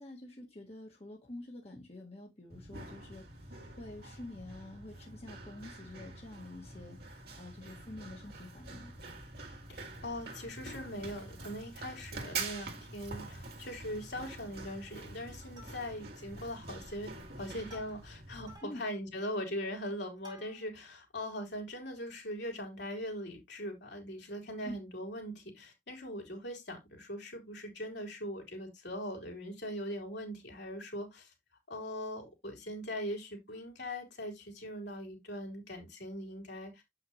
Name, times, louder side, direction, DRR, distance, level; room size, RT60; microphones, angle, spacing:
voice 1, 0.0-8.9 18.6-18.8 24.6-24.8, left 1 dB, 35° left, 1.5 m, -48 dB
Run, 2.5-18.5, right 3 dB, 60° right, 2.2 m, -46 dB
voice 2, 10.0-17.1 17.4-31.3 31.7-36.8, equal, 75° left, 3.5 m, -41 dB
Plucked string instrument, 10.2-10.8 11.3-11.4 11.6-11.8 12.3-12.9 13.3-13.4 13.7-14.1 14.4-14.8 15.2-16.2 16.8-20.9 21.4-21.5, equal, 25° right, 3.4 m, -59 dB
7.8 x 6.0 x 3.0 m
head